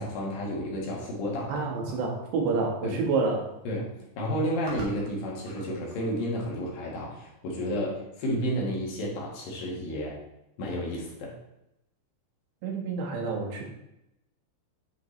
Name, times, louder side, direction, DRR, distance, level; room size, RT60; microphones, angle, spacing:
voice 1, 0.0-2.0 2.8-3.0 3.6-10.2 10.6-11.4, equal, 65° left, -3 dB, 3.1 m, -32 dB
sound 1, 1.5-1.9 3.0-3.1 3.3-3.7 4.3-6.1, right 2 dB, 55° right, 1.5 m, -44 dB
voice 2, 1.5-3.5 12.6-13.6, right 4 dB, 80° right, 1 dB, 3.6 m, -28 dB
9.7 x 6.2 x 3.2 m, 0.86 s
omnidirectional pair, 4.9 m